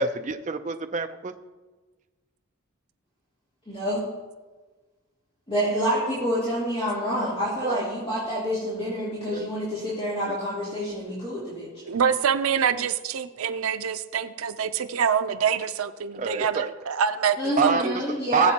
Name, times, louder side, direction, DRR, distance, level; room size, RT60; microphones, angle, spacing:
voice 1, 0.0-1.3 7.6-7.8 9.3-9.5 10.3-10.4 16.1-16.7 17.6-17.8 18.3-18.5, right 4 dB, 35° right, 7 dB, 0.5 m, -26 dB
voice 2, 3.7-4.0 5.5-11.7 17.4-18.5, equal, 25° left, -10 dB, 3.2 m, -27 dB
voice 3, 11.9-18.0, right 7 dB, 85° right, 10 dB, 0.5 m, -25 dB
19.0 x 8.0 x 2.9 m, 1.3 s
head